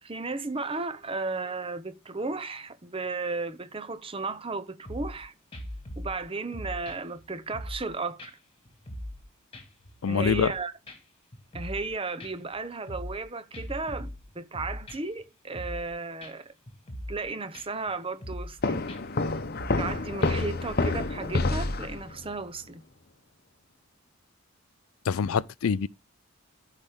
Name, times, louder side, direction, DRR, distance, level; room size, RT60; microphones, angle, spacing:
voice 1, 0.0-5.3 6.0-8.4 10.1-10.7 11.5-14.1 14.3-16.5 17.1-18.8 19.8-22.8, right 3 dB, 25° right, 0.8 m, -34 dB
sound 1, 4.9-5.2 5.5-6.2 6.5-7.9 8.2-8.3 8.7-9.3 9.5-10.6 10.9-11.0 11.3-11.9 12.2-13.2 13.5-15.2 15.5-15.9 16.2-16.3 16.7-17.2 17.5-17.9 18.2-18.6 18.9-19.0 19.3-19.9 20.2-20.5 20.9-21.0, equal, 25° left, 2.2 m, -40 dB
voice 2, 10.0-10.5 25.1-25.9, left 6 dB, 80° left, 0.4 m, -25 dB
sound 2, 18.6-22.3, left 3 dB, 45° left, 0.8 m, -28 dB
14.5 x 5.0 x 3.6 m
head